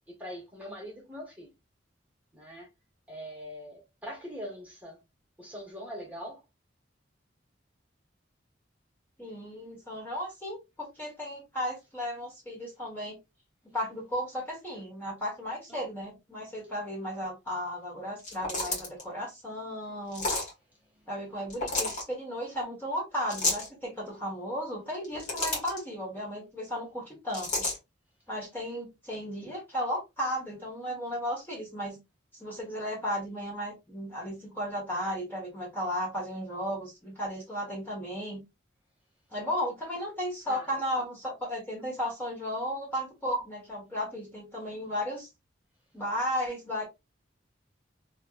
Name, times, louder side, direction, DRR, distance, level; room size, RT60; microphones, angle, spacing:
voice 1, 0.1-1.5 2.3-2.7 3.1-5.0 5.4-6.4 15.7-15.8 20.9-21.1 40.5-41.0, equal, 10° right, 1.4 m, -43 dB
voice 2, 9.2-13.2 13.6-20.3 21.1-27.7 28.3-32.0 32.4-38.4 39.3-45.3 45.9-46.9, equal, 10° left, 1.3 m, -34 dB
sound 1, 18.2-19.0 20.1-20.5 21.5-22.0 23.3-23.7 24.9-25.8 27.3-27.8, left 2 dB, 40° left, 1.6 m, -30 dB
3.1 x 2.9 x 2.4 m
head